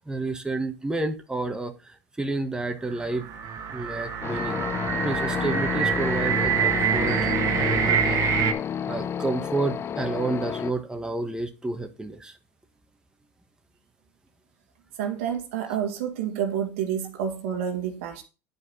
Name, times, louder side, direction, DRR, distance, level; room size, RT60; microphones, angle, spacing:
voice 1, 0.1-3.3 3.7-4.6 5.0-7.2 7.5-8.2 8.9-12.4, right 2 dB, 10° right, 1.5 m, -30 dB
sound 1, 2.9-8.5, right 7 dB, 55° right, 1.5 m, -26 dB
sound 2, 4.2-10.7, left 8 dB, 40° left, 0.6 m, -30 dB
voice 2, 15.0-18.2, right 8 dB, 85° right, 1.8 m, -29 dB
9.8 x 5.0 x 4.1 m
supercardioid pair, 85°, 7 cm